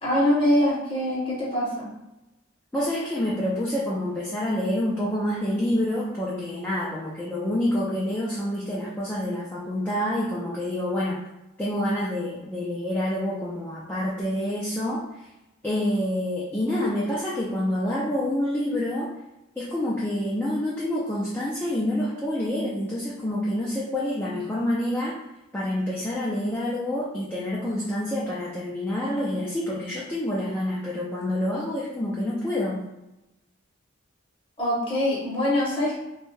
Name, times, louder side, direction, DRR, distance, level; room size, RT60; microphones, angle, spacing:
voice 1, 0.0-1.9 34.6-36.0, left 1 dB, 25° left, -6 dB, 0.8 m, -23 dB
voice 2, 2.7-11.2 11.6-15.0 15.6-19.1 19.6-25.2 25.5-32.8, left 1 dB, 10° left, -7 dB, 0.4 m, -27 dB
2.6 x 2.2 x 3.1 m, 0.93 s
head